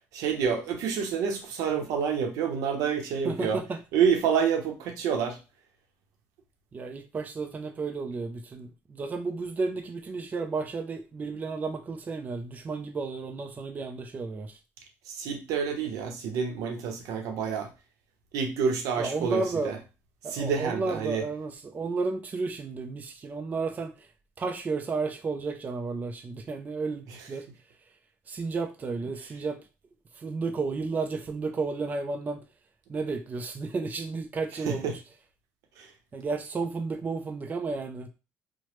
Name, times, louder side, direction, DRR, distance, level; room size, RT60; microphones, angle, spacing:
voice 1, 0.1-3.6 3.9-5.4 15.1-17.7 18.3-19.8 20.3-21.2 34.7-34.9 35.8-35.9, right 6 dB, 85° right, 0.7 m, -28 dB
voice 2, 3.2-3.8 6.7-14.6 19.0-19.8 20.2-24.1 24.4-27.5 28.3-29.6 30.1-32.4 32.9-35.0 36.1-38.1, right 4 dB, 30° right, 0.4 m, -32 dB
3.0 x 2.0 x 3.0 m
cardioid pair, 90°, 6 cm